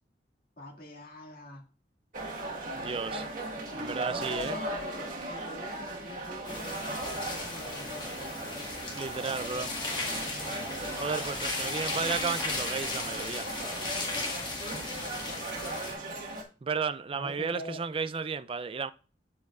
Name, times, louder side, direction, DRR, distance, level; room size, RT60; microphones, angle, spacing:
voice 1, 0.6-1.6 3.7-8.0 17.1-17.8, equal, 55° left, 2.1 m, -46 dB
sound 1, 2.1-16.4, right 1 dB, 50° right, 1.5 m, -38 dB
voice 2, 2.8-3.2 3.8-4.6 8.9-9.7 10.9-13.5 16.6-18.9, right 5 dB, 30° right, 0.3 m, -33 dB
sound 2, 6.5-15.9, left 2 dB, 25° left, 1.6 m, -36 dB
12.5 x 4.5 x 2.4 m
head